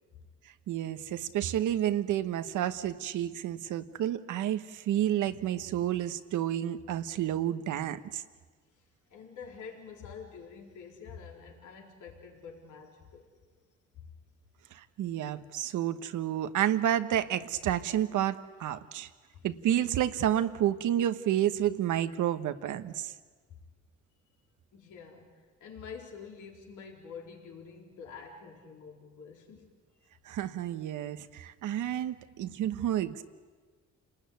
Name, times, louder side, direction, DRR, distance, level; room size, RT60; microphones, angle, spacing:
voice 1, 0.7-8.2 14.7-19.1 19.4-23.1 30.2-33.2, right 11 dB, 80° right, 10 dB, 1.3 m, -30 dB
voice 2, 9.1-13.3 14.0-14.1 19.0-19.5 23.5-23.6 24.7-29.7, left 6 dB, 80° left, 0 dB, 4.3 m, -47 dB
29.0 x 19.5 x 9.5 m, 1.5 s
cardioid pair, 90°, 30 cm